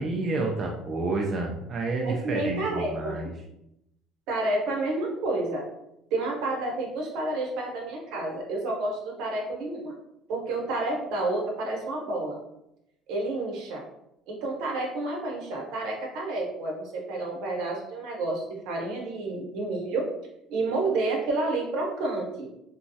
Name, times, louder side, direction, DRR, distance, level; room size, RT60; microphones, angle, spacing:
voice 1, 0.0-3.3, right 2 dB, 30° right, 0 dB, 0.4 m, -29 dB
voice 2, 2.0-3.2 4.3-5.6 6.1-9.9 10.3-12.4 13.1-13.8 14.3-20.0 20.5-22.5, right 2 dB, 70° right, 0 dB, 0.8 m, -30 dB
3.0 x 2.2 x 2.6 m, 0.82 s
cardioid pair, 145°, 0 cm